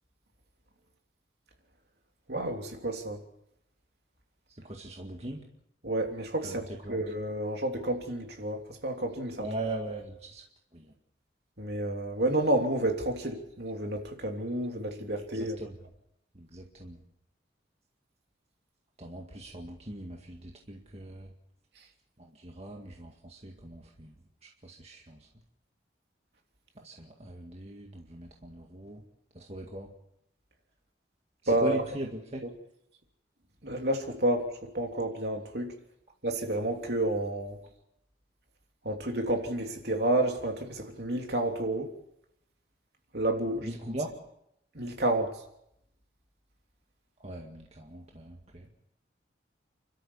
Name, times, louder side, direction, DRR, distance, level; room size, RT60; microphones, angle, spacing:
voice 1, 2.3-3.2 5.8-9.5 11.6-15.6 31.5-31.8 33.6-35.7 36.2-37.6 38.8-41.9 43.1-43.7 44.7-45.3, right 1 dB, 60° right, 3.2 m, -30 dB
voice 2, 4.6-5.5 6.4-7.0 9.4-10.4 10.7-10.9 15.3-15.8 16.3-17.0 19.0-21.3 22.2-24.1 24.6-25.3 26.8-29.0 29.3-29.9 31.4-32.4 43.6-44.2 47.2-48.7, right 1 dB, 35° right, 2.0 m, -40 dB
30.0 x 13.0 x 7.2 m
head